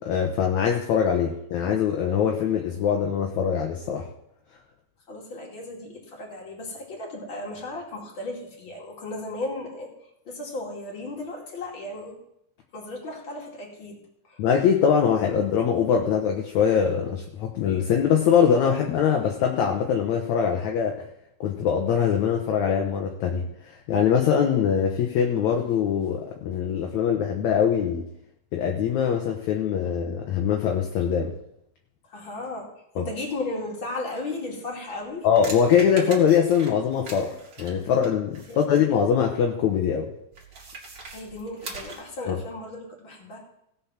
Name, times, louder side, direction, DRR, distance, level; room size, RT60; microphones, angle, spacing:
voice 1, 0.0-4.1 14.4-21.0 21.4-28.0 28.5-31.3 33.0-33.1 35.2-40.1 42.3-42.4, left 7 dB, 65° left, 2 dB, 2.0 m, -23 dB
voice 2, 5.1-9.9 10.3-12.2 12.7-14.0 14.2-14.4 32.1-32.7 33.0-35.3 38.5-38.7 41.1-43.4, left 2 dB, 35° left, -2 dB, 3.0 m, -35 dB
sound 1, 34.9-38.9 40.3-42.2, right 3 dB, 35° right, 2.5 m, -41 dB
17.0 x 6.1 x 5.8 m, 0.77 s
omnidirectional pair, 4.2 m